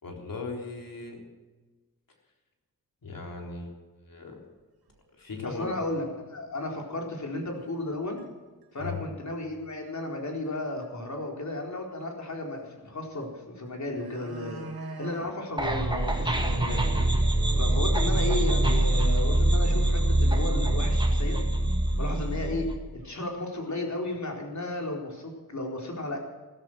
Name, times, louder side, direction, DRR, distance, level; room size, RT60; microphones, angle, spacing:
voice 1, 0.0-1.2 3.0-3.7 4.1-4.4 5.1-5.7 8.8-9.0, left 4 dB, 65° left, 1 dB, 3.8 m, -38 dB
sound 1, 4.9-5.0 5.5-5.6 5.9-6.0 7.0-7.1 7.6-7.9 8.2-8.3 8.6-9.0 10.4-10.5 10.8-10.9 13.2-13.3 13.7-15.3 15.7-15.8 16.2-16.3 16.6-16.7 17.1-17.2 20.0-20.1 20.4-20.6 21.3-21.4 21.8-22.1 22.3-23.1 23.5-23.6, right 2 dB, 90° right, 3.0 m, -44 dB
voice 2, 5.4-8.2 8.7-21.4 22.0-22.7 23.0-26.2, left 2 dB, 50° left, 1 dB, 4.2 m, -34 dB
sound 2, 15.6-22.7, right 1 dB, 15° right, 1.9 m, -24 dB
15.5 x 14.5 x 6.2 m, 1.3 s
wide cardioid pair, 95°, 36 cm